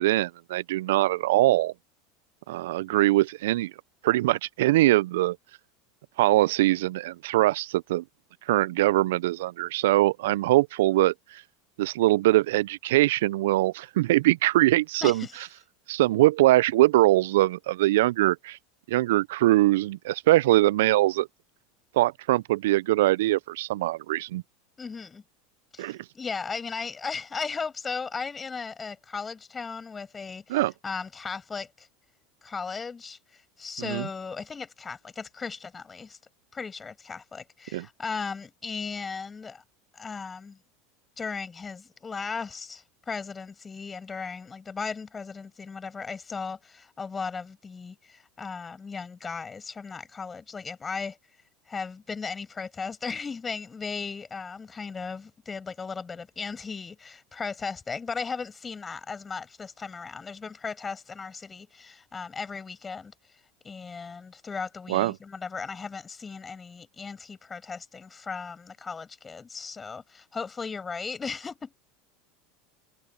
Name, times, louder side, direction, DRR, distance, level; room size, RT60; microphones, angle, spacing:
voice 1, 0.0-1.7 2.5-3.7 4.0-5.4 6.2-8.0 8.5-11.4 11.8-15.3 15.9-18.6 18.9-21.3 21.9-24.4 25.8-26.0 30.5-30.7 33.8-34.1 37.7-37.9 64.9-65.2, right 17 dB, 75° right, 0.5 m, -22 dB
voice 2, 15.0-15.4 24.8-25.2 25.7-31.9 32.4-36.2 36.5-39.6 39.9-40.6 41.2-51.2 51.7-63.1 63.6-71.7, left 5 dB, 20° left, 8.0 m, -36 dB
hypercardioid pair, 85°, 0 cm